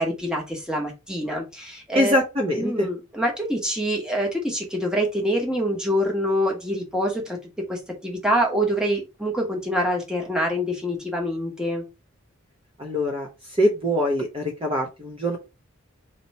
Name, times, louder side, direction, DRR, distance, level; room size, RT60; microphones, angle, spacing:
voice 1, 0.0-2.2 2.6-7.4 7.7-11.8, equal, 5° right, -1 dB, 1.1 m, -25 dB
voice 2, 1.9-2.9 12.8-15.4, equal, 25° right, 0 dB, 0.7 m, -23 dB
4.5 x 2.9 x 4.1 m, 0.27 s
head